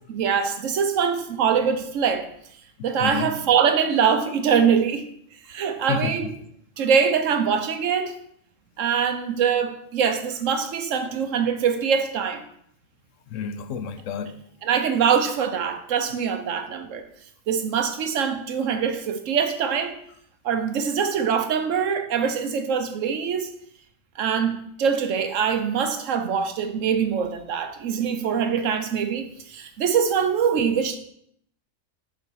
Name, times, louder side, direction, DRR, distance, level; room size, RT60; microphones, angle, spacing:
voice 1, 0.1-2.3 2.8-5.0 5.5-6.3 6.8-8.1 8.8-12.4 14.6-17.0 17.5-20.0 20.4-23.5 24.2-31.0, right 7 dB, 70° right, 8 dB, 1.1 m, -23 dB
voice 2, 2.8-3.3 5.9-6.3 13.3-14.3, left 6 dB, 75° left, 11 dB, 0.9 m, -30 dB
6.4 x 5.3 x 4.6 m, 0.69 s
omnidirectional pair, 1.4 m